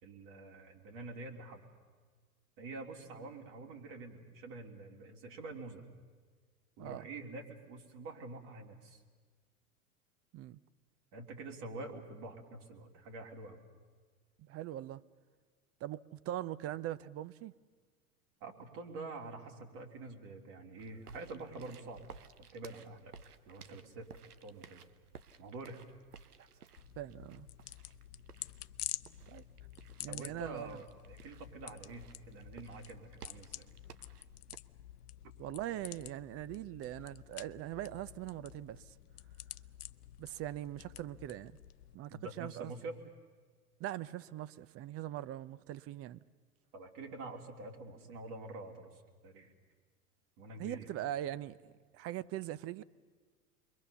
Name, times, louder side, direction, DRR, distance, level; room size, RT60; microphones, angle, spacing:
voice 1, 0.0-1.6 2.6-5.8 6.8-9.0 11.1-13.6 18.4-22.1 22.4-23.1 23.4-24.8 25.4-25.8 30.1-33.7 42.1-43.0 46.7-49.5 50.4-50.9, right 2 dB, 50° right, 3.5 m, -47 dB
voice 2, 14.4-15.0 15.8-17.5 27.0-27.5 29.3-29.4 30.0-30.8 35.4-38.9 40.2-41.6 41.9-42.7 43.8-46.2 50.6-52.8, right 13 dB, 30° right, 0.6 m, -41 dB
sound 1, 20.8-34.6, right 6 dB, 85° right, 1.0 m, -57 dB
sound 2, 26.8-41.9, left 13 dB, 80° left, 0.7 m, -49 dB
28.0 x 22.5 x 7.0 m
hypercardioid pair, 95°, 45 cm